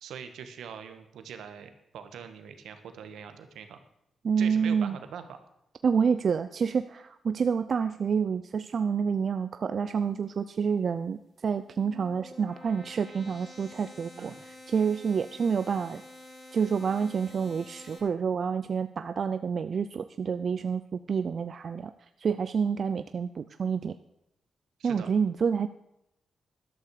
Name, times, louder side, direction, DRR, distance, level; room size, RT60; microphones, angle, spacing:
voice 1, 0.0-3.8 4.4-5.4 14.2-14.4 24.8-25.1, right 7 dB, 85° right, 8 dB, 1.6 m, -43 dB
voice 2, 4.2-5.0 5.8-16.0 16.5-21.9 22.2-23.9 24.8-25.7, right 6 dB, 60° right, 11 dB, 0.6 m, -28 dB
sound 1, 11.5-18.0, left 2 dB, 30° left, 5.2 m, -49 dB
13.5 x 12.0 x 4.9 m, 0.82 s
cardioid pair, 65°, 0 cm